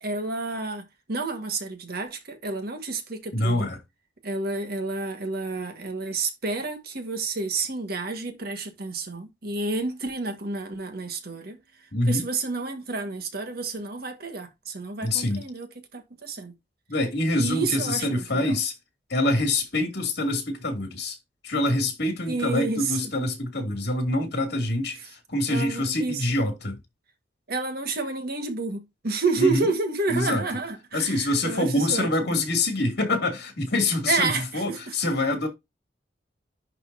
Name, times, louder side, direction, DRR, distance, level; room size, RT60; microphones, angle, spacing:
voice 1, 0.0-3.7 4.2-11.6 12.1-15.7 15.9-16.5 17.4-18.5 22.3-23.0 25.5-26.3 27.5-32.1 34.1-34.9, right 3 dB, 55° right, 1.7 m, -30 dB
voice 2, 3.3-3.8 11.9-12.2 15.0-15.4 16.9-18.7 19.1-21.2 21.4-26.8 29.4-29.7 30.1-30.4 30.9-35.5, left 2 dB, 60° left, 2.8 m, -25 dB
11.0 x 3.9 x 2.8 m
head